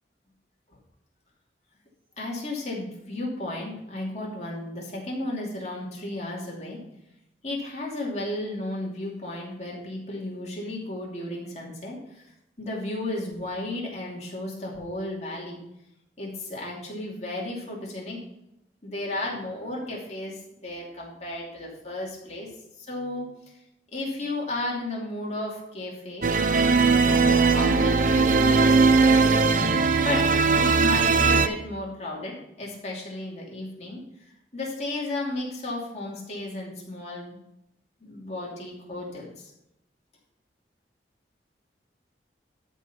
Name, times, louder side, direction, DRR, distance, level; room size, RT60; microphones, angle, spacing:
voice 1, 2.2-6.8 7.4-12.3 12.6-15.6 16.2-18.2 18.8-22.5 22.8-23.3 23.9-26.4 27.0-34.0 34.5-37.4 38.0-39.5, left 1 dB, 40° left, -3 dB, 2.7 m, -34 dB
sound 1, 26.2-31.5, right 4 dB, 45° right, 0.6 m, -19 dB
12.5 x 4.7 x 5.5 m, 0.84 s
head